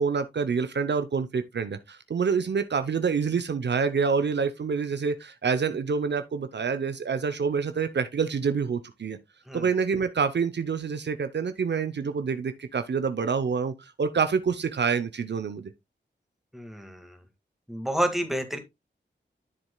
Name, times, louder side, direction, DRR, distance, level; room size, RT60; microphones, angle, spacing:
voice 1, 0.0-9.2 9.5-15.7, right 5 dB, 65° right, 0.7 m, -27 dB
voice 2, 16.5-17.2 17.7-18.6, right 1 dB, ahead, 1.8 m, -29 dB
9.7 x 7.4 x 2.2 m
cardioid pair, 55°, 19 cm